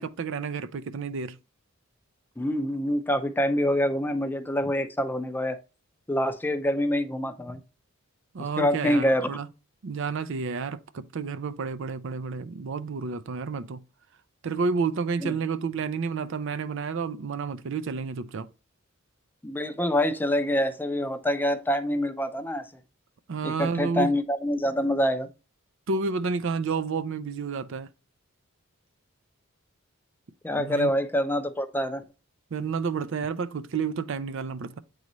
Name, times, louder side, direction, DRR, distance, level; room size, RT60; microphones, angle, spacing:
voice 1, 0.0-1.4 8.3-9.5 9.8-13.8 14.4-18.5 23.3-24.1 25.9-27.9 30.5-30.9 32.5-34.8, right 5 dB, 65° right, 0.5 m, -30 dB
voice 2, 2.4-5.6 6.1-7.6 8.4-9.3 15.2-15.4 19.4-22.6 23.4-25.3 30.4-32.0, equal, 10° left, 0.5 m, -26 dB
8.4 x 3.9 x 3.0 m
head